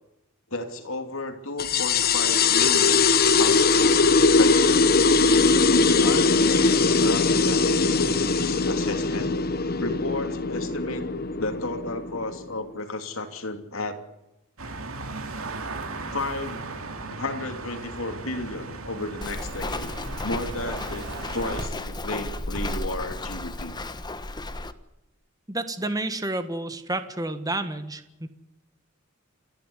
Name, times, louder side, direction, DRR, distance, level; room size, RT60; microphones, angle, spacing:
voice 1, 0.5-3.1 3.4-4.9 5.7-9.3 9.8-11.1 11.4-14.0 16.1-16.8 17.1-19.9 20.2-23.8, left 2 dB, 70° left, 6 dB, 3.1 m, -33 dB
sound 1, 1.6-12.6, left 4 dB, 45° left, 1.3 m, -21 dB
sound 2, 14.6-21.7, right 3 dB, 75° right, 2.5 m, -37 dB
Walk footsteps, 19.2-24.7, left 2 dB, 20° left, 1.2 m, -33 dB
voice 2, 25.5-28.3, right 2 dB, 15° right, 10 dB, 1.6 m, -30 dB
28.5 x 11.5 x 10.0 m, 0.92 s
head